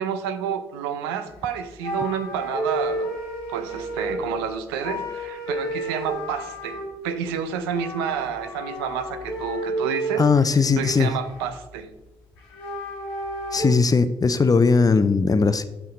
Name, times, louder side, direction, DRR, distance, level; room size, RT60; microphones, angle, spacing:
voice 1, 0.0-3.1 3.5-10.3 10.8-11.9, right 7 dB, 85° right, 9 dB, 0.5 m, -29 dB
sound 1, 1.3-1.5 1.8-4.3 4.8-6.9 7.7-10.2 10.7-11.7 12.4-13.7, right 1 dB, 85° left, 1.1 m, -31 dB
voice 2, 10.2-11.1 13.5-15.7, left 4 dB, 30° left, 12 dB, 0.6 m, -19 dB
7.0 x 5.6 x 3.1 m, 0.99 s
hypercardioid pair, 45°, 13 cm